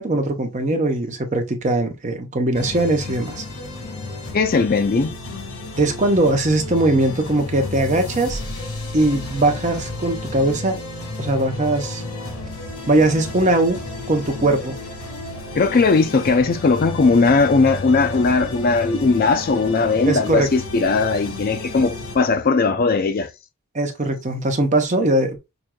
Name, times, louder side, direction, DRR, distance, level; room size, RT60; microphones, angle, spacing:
voice 1, 0.0-3.4 5.8-8.4 8.9-10.8 11.2-12.0 12.9-13.8 14.1-14.7 20.1-20.5 23.7-25.4, right 2 dB, 35° right, 0.7 m, -20 dB
sound 1, 2.5-22.2, left 2 dB, 85° left, 1.5 m, -32 dB
voice 2, 4.3-5.2 15.5-23.3, left 4 dB, 40° left, 0.4 m, -18 dB
5.9 x 2.6 x 2.2 m
head